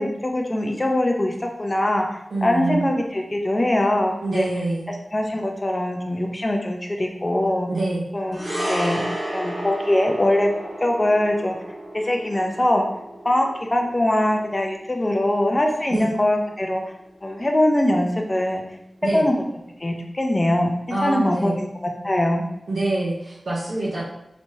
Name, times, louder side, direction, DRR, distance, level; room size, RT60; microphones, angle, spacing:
voice 1, 0.0-4.5 5.1-7.7 8.1-9.0 9.3-10.5 10.8-11.6 11.9-12.9 13.2-16.8 17.2-18.6 19.1-19.3 19.8-20.7 21.0-21.7 22.0-22.4, left 1 dB, 30° left, 2 dB, 0.6 m, -22 dB
voice 2, 2.3-2.8 4.2-4.9 7.7-8.0 15.9-16.1 19.0-19.2 20.9-21.5 22.7-24.0, right 2 dB, 75° right, -7 dB, 0.8 m, -25 dB
sound 1, 8.3-16.8 17.1-17.3, right 1 dB, 30° right, 1.4 m, -33 dB
3.3 x 3.1 x 2.8 m, 0.86 s
cardioid pair, 50°, 0 cm